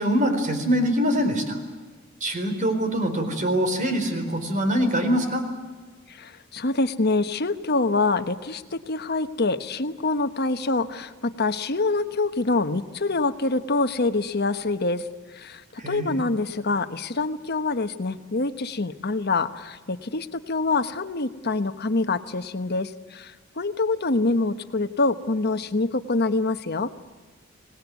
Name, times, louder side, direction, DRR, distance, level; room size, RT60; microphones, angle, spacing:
voice 1, 0.0-1.6 2.2-5.4 15.8-16.2, equal, 40° right, 6 dB, 4.2 m, -24 dB
voice 2, 6.2-15.0 15.4-15.6 15.9-26.9, left 3 dB, 50° left, 10 dB, 1.1 m, -25 dB
25.5 x 19.0 x 9.4 m, 1.4 s
head